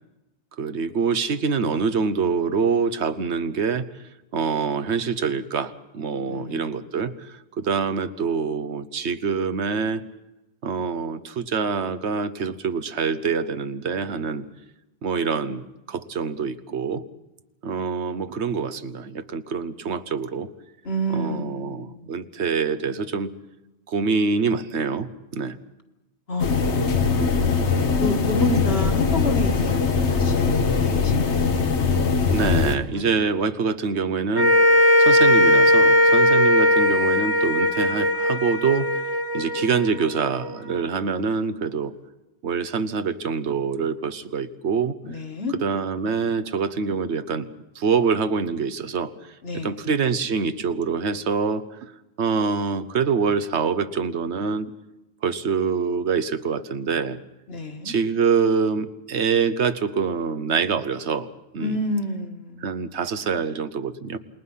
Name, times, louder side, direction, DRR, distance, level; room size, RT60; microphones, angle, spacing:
voice 1, 0.6-3.9 4.3-10.0 10.6-14.5 15.0-17.0 17.6-20.5 21.1-23.3 23.9-25.6 32.3-34.6 35.0-38.9 39.3-41.9 42.4-45.0 45.5-47.5 47.7-49.1 49.5-51.9 52.2-54.7 55.2-57.2 57.8-61.3 61.5-61.8 62.6-64.2, right 5 dB, 80° right, 12 dB, 1.2 m, -25 dB
voice 2, 6.3-6.9 20.8-22.1 26.3-27.3 28.0-31.5 32.9-33.1 45.0-45.5 49.4-49.8 57.5-57.9 61.6-62.7, left 1 dB, 65° left, 4 dB, 2.2 m, -30 dB
sound 1, 26.4-32.8, left 5 dB, 90° left, 1.6 m, -21 dB
sound 2, 34.3-40.8, left 1 dB, 30° left, 1.5 m, -18 dB
28.0 x 20.5 x 5.6 m, 0.99 s
omnidirectional pair, 1.1 m